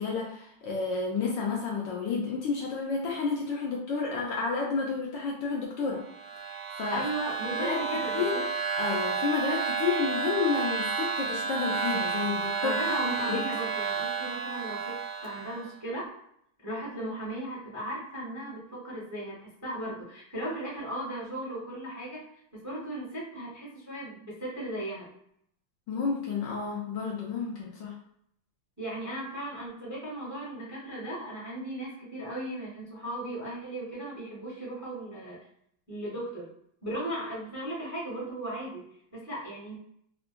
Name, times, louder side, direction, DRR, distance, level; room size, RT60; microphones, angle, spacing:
voice 1, 0.0-6.0 6.8-7.0 7.6-7.8 8.1-8.4 8.8-12.8 13.3-13.4 25.9-27.9, left 5 dB, 70° left, -3 dB, 1.2 m, -30 dB
sound 1, 6.1-15.7, right 5 dB, 85° right, 1.4 m, -31 dB
voice 2, 6.9-8.4 12.6-16.2 16.6-22.3 22.5-25.1 28.8-35.4 35.9-36.5 36.8-39.8, right 1 dB, 15° right, -7 dB, 0.6 m, -37 dB
3.6 x 2.2 x 2.5 m, 0.71 s
omnidirectional pair, 2.3 m